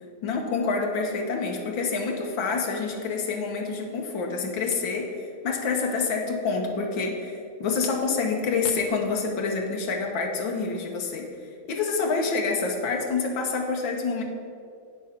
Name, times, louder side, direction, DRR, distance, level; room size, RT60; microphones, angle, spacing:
voice 1, 0.2-11.3 11.7-14.2, left 4 dB, 85° left, 2 dB, 1.7 m, -27 dB
8.9 x 6.3 x 5.7 m, 2.4 s
omnidirectional pair, 2.1 m